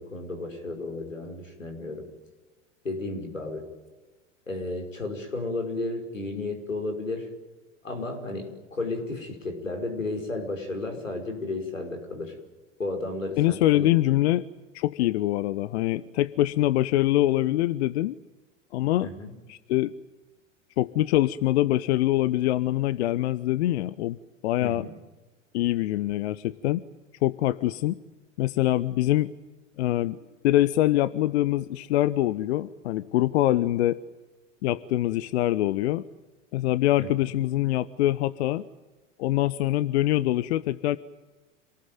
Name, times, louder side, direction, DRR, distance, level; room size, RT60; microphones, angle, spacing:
voice 1, 0.0-2.1 2.8-3.7 4.5-7.3 7.8-12.3 12.8-13.9 19.0-19.3 24.6-24.9 37.0-37.1, left 2 dB, 90° left, 5 dB, 5.3 m, -33 dB
voice 2, 13.4-14.5 14.7-18.1 18.7-19.1 19.5-19.9 20.8-24.2 24.4-24.9 25.5-26.8 27.2-28.0 28.4-29.3 29.8-30.2 30.4-34.0 34.6-36.0 36.5-38.7 39.2-41.0, left 15 dB, 60° left, 17 dB, 0.9 m, -24 dB
27.5 x 19.5 x 9.3 m, 1.2 s
figure-of-eight pair, 90°, 38 cm